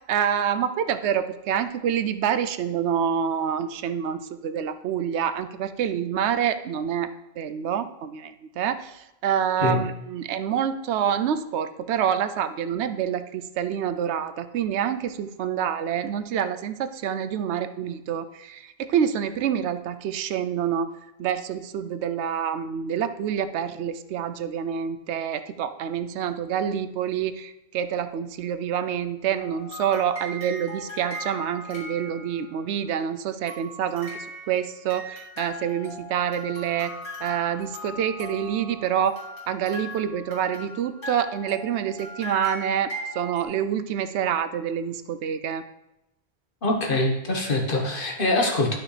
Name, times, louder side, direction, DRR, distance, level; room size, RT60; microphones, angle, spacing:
voice 1, 0.1-7.1 7.4-20.9 21.2-36.9 37.2-45.6, right 8 dB, 90° right, 11 dB, 0.9 m, -27 dB
sound 1, 29.3-32.7 33.5-43.4, equal, 75° left, 2.7 m, -39 dB
voice 2, 46.6-48.8, left 2 dB, 55° left, 1 dB, 1.5 m, -24 dB
11.5 x 6.0 x 3.3 m, 0.90 s
omnidirectional pair, 1.1 m